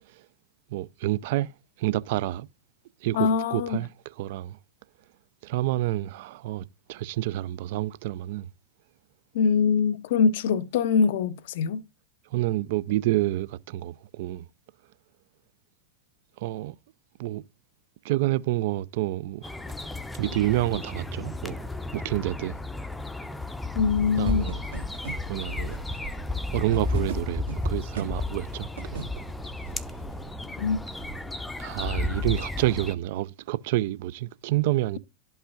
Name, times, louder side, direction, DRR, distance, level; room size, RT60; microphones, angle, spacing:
voice 1, 0.7-1.5 1.8-2.5 3.0-3.9 4.2-4.6 5.4-8.5 12.3-14.5 16.4-16.7 17.2-17.4 18.0-19.4 20.2-21.6 21.9-22.6 24.2-24.7 25.3-25.8 26.5-29.0 31.6-35.0, right 15 dB, 50° right, 0.4 m, -28 dB
voice 2, 3.1-3.8 9.3-11.8 23.7-24.6 30.6-30.8, left 5 dB, 55° left, 0.5 m, -23 dB
sound 1, 19.4-32.9, left 2 dB, 5° left, 0.6 m, -33 dB
sound 2, 24.2-32.3, right 6 dB, 70° right, 1.6 m, -41 dB
12.0 x 5.5 x 2.3 m
figure-of-eight pair, 90°, 0 cm